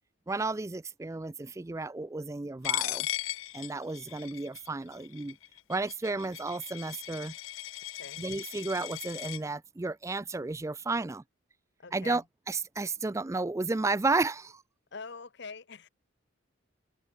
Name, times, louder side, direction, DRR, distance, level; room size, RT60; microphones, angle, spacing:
voice 1, 0.3-3.1 3.5-5.4 5.7-7.3 8.2-11.2 11.9-12.2 12.5-14.6, right 3 dB, 15° right, 0.3 m, -32 dB
Coin (dropping), 2.6-9.4, left 15 dB, 70° left, 0.5 m, -37 dB
voice 2, 11.8-12.2 14.9-15.9, left 4 dB, 55° left, 1.0 m, -44 dB
open air
head